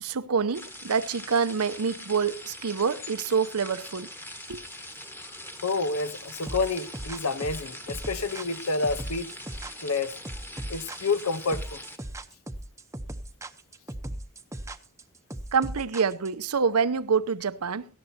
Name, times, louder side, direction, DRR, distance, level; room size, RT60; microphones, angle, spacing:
voice 1, 0.0-4.1 4.5-4.6 15.5-17.9, right 6 dB, 85° right, 0.7 m, -26 dB
sound 1, 0.5-12.0, left 1 dB, 10° left, 1.5 m, -42 dB
voice 2, 5.6-9.3 9.8-10.1 10.7-11.8, left 3 dB, 80° left, 0.9 m, -29 dB
sound 2, 6.5-16.5, right 1 dB, 15° right, 0.8 m, -37 dB
18.0 x 14.0 x 2.8 m
head